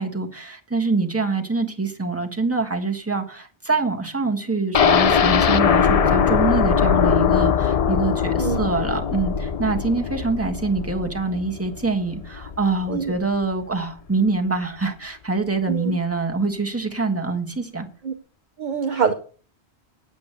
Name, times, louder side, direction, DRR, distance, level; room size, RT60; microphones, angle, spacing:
voice 1, 0.0-17.9, right 3 dB, 15° right, 1.6 m, -25 dB
sound 1, 4.7-12.6 13.0-13.1 13.4-13.5, left 7 dB, 45° left, 0.5 m, -21 dB
voice 2, 15.7-16.0 18.0-18.1 18.6-19.1, right 6 dB, 50° right, 0.9 m, -24 dB
8.3 x 8.3 x 6.7 m
omnidirectional pair, 1.1 m